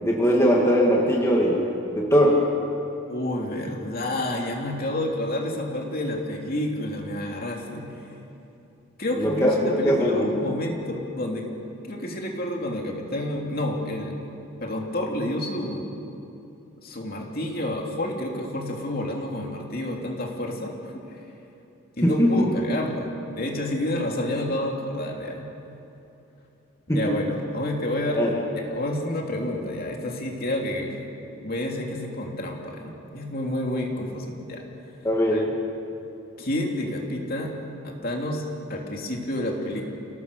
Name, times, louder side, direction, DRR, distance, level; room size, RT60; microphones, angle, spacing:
voice 1, 0.0-2.4 9.2-10.3 22.0-22.5 26.9-27.2 28.2-28.3 35.0-35.5, equal, 15° left, -3 dB, 2.2 m, -20 dB
voice 2, 3.1-7.9 9.0-11.5 11.8-14.3 14.6-15.9 16.8-21.2 22.0-25.5 26.9-28.2 28.6-31.0 31.4-34.6 35.3-35.4 36.4-37.5 37.8-38.4 38.7-39.8, left 1 dB, 45° left, 0 dB, 3.1 m, -29 dB
29.0 x 18.0 x 7.0 m, 2.8 s
head